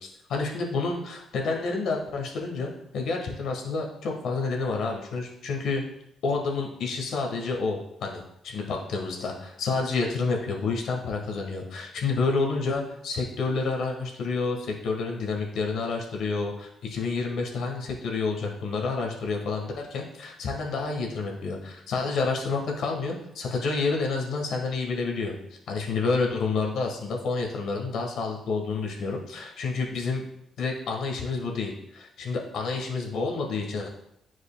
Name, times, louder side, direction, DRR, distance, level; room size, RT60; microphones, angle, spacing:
voice 1, 0.3-5.8 6.2-25.3 25.7-30.2 30.6-33.9, left 4 dB, 75° left, 1 dB, 1.3 m, -29 dB
9.8 x 4.8 x 2.2 m, 0.78 s
cardioid pair, 90°, 0 cm